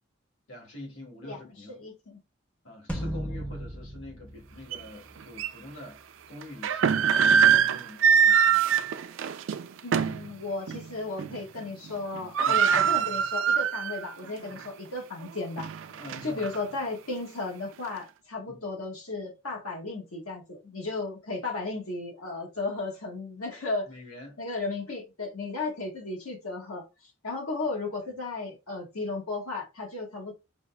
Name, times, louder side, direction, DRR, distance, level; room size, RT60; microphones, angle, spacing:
voice 1, 0.5-1.8 2.6-8.6 12.4-12.9 15.9-16.5 18.5-18.7 23.9-24.4 28.0-28.1, left 2 dB, 65° left, 1.6 m, -46 dB
voice 2, 1.7-2.2 9.8-15.7 16.2-23.9 24.4-26.9 27.2-30.3, left 3 dB, 90° left, 1.4 m, -34 dB
sound 1, 2.9-5.4, right 1 dB, 5° left, 0.5 m, -36 dB
sound 2, 4.7-4.8 5.4-5.5 6.4-10.3 10.7-10.8 11.2-11.6 11.9-12.0 12.1-14.1 14.5-14.6 15.2-16.6, right 7 dB, 65° right, 0.3 m, -23 dB
5.1 x 2.4 x 2.2 m
head